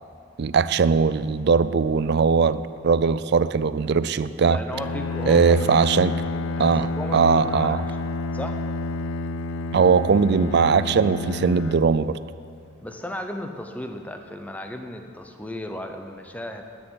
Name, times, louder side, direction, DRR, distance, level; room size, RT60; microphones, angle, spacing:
voice 1, 0.4-4.6 5.3-6.1 6.6-7.8 9.7-12.2, right 5 dB, 55° right, 15 dB, 0.4 m, -20 dB
voice 2, 4.4-5.9 6.6-8.6 12.8-16.6, left 1 dB, 5° left, 5 dB, 0.8 m, -35 dB
Bowed string instrument, 4.7-12.7, left 3 dB, 75° left, 0.4 m, -30 dB
10.5 x 9.9 x 8.0 m, 2.3 s
head